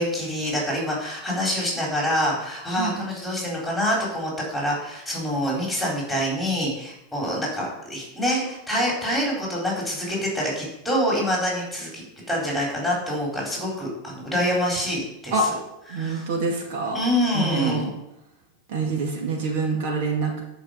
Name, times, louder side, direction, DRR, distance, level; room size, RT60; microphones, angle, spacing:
voice 1, 0.0-15.3 15.9-16.3 16.9-17.9, equal, ahead, -3 dB, 4.1 m, -26 dB
voice 2, 2.8-3.1 15.3-15.5 15.9-17.0 17.3-17.9 18.7-20.4, right 3 dB, 65° right, 1 dB, 2.3 m, -26 dB
11.0 x 5.4 x 6.6 m, 0.86 s
supercardioid pair, 145°, 0 cm